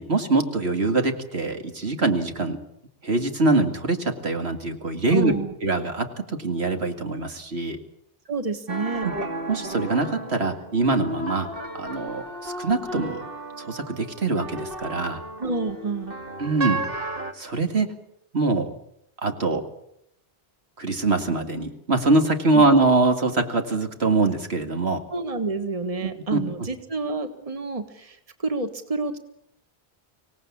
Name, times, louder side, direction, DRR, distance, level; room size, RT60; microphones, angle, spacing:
voice 1, 0.0-2.6 3.0-5.3 5.6-7.8 9.0-9.1 9.5-11.5 11.7-13.3 13.6-15.2 16.4-17.9 18.3-18.7 19.2-19.6 20.8-25.0 26.0-26.4, right 3 dB, 80° right, 6 dB, 2.5 m, -23 dB
voice 2, 5.1-5.5 8.3-9.1 15.4-16.2 22.5-22.6 25.1-29.2, right 3 dB, 35° right, 9 dB, 1.6 m, -29 dB
sound 1, 8.7-17.3, right 1 dB, 60° right, 2.4 m, -33 dB
25.5 x 18.0 x 8.5 m, 0.75 s
omnidirectional pair, 1.1 m